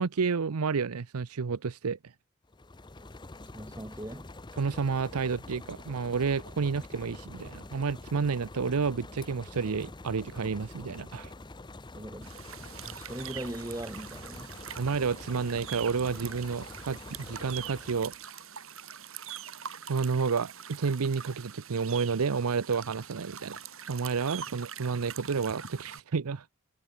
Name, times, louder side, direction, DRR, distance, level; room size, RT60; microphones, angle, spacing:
voice 1, 0.0-2.0 4.6-11.3 14.8-18.1 19.9-23.6 23.9-26.5, right 5 dB, 85° right, 0.6 m, -30 dB
sound 1, 2.4-18.2, left 2 dB, 20° left, 0.7 m, -46 dB
voice 2, 3.5-4.3 11.9-12.3 12.8-14.5, right 1 dB, 15° right, 0.9 m, -40 dB
sound 2, 12.2-26.0, right 9 dB, 65° right, 5.0 m, -44 dB
head